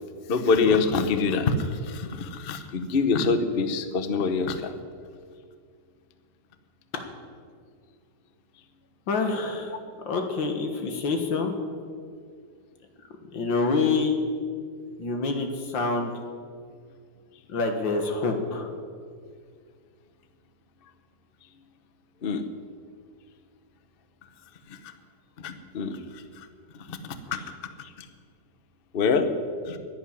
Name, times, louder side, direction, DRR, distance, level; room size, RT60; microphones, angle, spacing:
voice 1, 0.3-4.7 22.2-22.4 24.7-24.9 25.4-26.5 26.8-27.4 27.8-28.1 28.9-29.3 29.6-29.8, left 4 dB, 40° left, 9 dB, 0.9 m, -26 dB
voice 2, 9.1-9.7 10.1-11.5 13.3-14.1 15.0-16.1 17.5-18.7, left 4 dB, 80° left, 5 dB, 2.3 m, -26 dB
11.0 x 10.5 x 10.0 m, 2.1 s
omnidirectional pair, 2.0 m